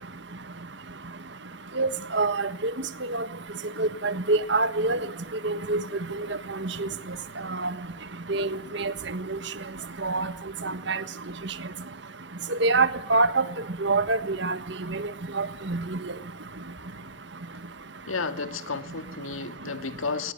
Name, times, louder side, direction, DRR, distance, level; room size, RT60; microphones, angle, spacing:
voice 1, 1.8-2.7 3.1-3.3 3.8-5.0 5.4-5.8 6.6-6.9 7.6-7.7 8.3-8.9 10.0-10.3 10.9-11.0 12.6-13.4 13.8-14.6 14.9-15.0 15.4-16.0, right 3 dB, 60° right, 1.4 m, -25 dB
voice 2, 18.1-20.3, left 4 dB, 85° left, 1.9 m, -32 dB
21.5 x 19.0 x 9.2 m
head